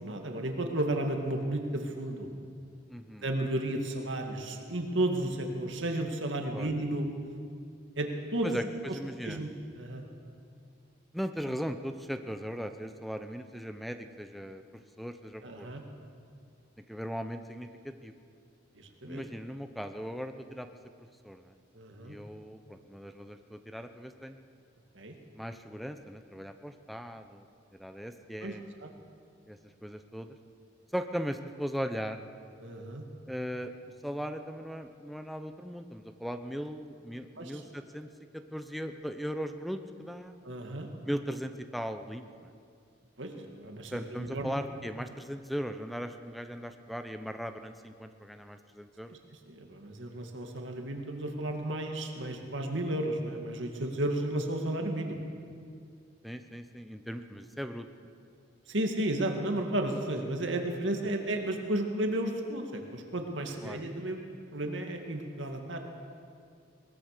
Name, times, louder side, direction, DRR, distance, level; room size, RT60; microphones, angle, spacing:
voice 1, 0.0-2.3 3.2-7.1 8.0-8.6 8.9-9.0 9.2-9.5 9.8-10.0 15.4-15.8 18.7-19.2 21.7-22.2 24.9-25.2 28.4-28.9 32.6-33.0 37.4-37.6 40.4-40.9 43.2-44.5 49.1-49.2 49.5-55.2 58.7-64.2 64.5-65.8, right 1 dB, 70° right, 3 dB, 2.2 m, -33 dB
voice 2, 2.9-3.2 6.5-6.7 8.4-8.6 8.9-9.4 11.1-14.6 15.0-15.8 16.9-18.1 19.1-20.7 21.0-21.5 22.0-24.4 25.3-27.5 27.8-28.6 29.5-30.3 30.9-32.2 33.3-33.7 34.0-38.1 38.5-40.3 41.1-42.5 43.9-49.2 56.2-57.8 63.6-63.8, equal, ahead, 7 dB, 0.8 m, -38 dB
22.0 x 19.5 x 6.7 m, 2.3 s
head